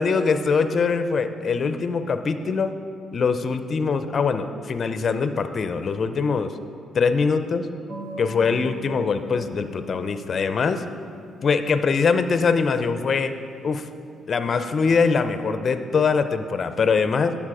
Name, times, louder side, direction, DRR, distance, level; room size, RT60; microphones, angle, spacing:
voice 1, 0.0-2.8 3.1-6.5 6.9-7.7 8.2-10.8 11.4-13.3 13.6-13.9 14.3-17.3, left 5 dB, 45° left, 9 dB, 0.5 m, -22 dB
sound 1, 7.9-14.1, left 4 dB, 45° right, 1.6 m, -42 dB
9.9 x 7.0 x 4.8 m, 2.3 s
cardioid pair, 90°, 0 cm